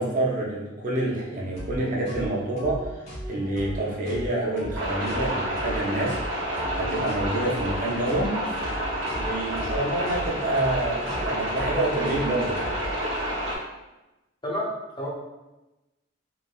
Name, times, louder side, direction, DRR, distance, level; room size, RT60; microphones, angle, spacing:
voice 1, 0.0-2.9 3.3-6.2 6.7-8.6 9.2-12.6, right 1 dB, 40° right, -4 dB, 0.5 m, -27 dB
sound 1, 1.5-12.9, equal, 40° left, 1.3 m, -37 dB
sound 2, 4.7-13.6, equal, 75° right, 0.8 m, -30 dB
voice 2, 14.4-15.2, equal, 20° left, -6 dB, 0.5 m, -30 dB
3.0 x 2.6 x 2.3 m, 1.0 s
head